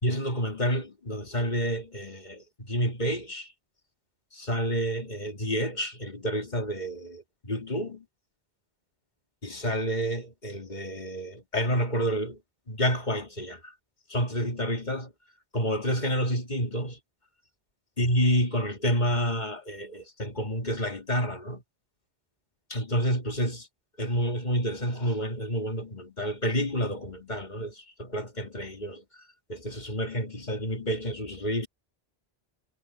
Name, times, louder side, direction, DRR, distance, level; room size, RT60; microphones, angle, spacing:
voice 1, 0.0-3.5 4.3-8.0 9.4-12.4 12.7-13.7 14.1-15.1 15.5-17.0 18.0-21.6 22.7-23.7 24.0-29.0 29.5-31.7, equal, 45° left, 2.5 m, -29 dB
omnidirectional pair, 1.1 m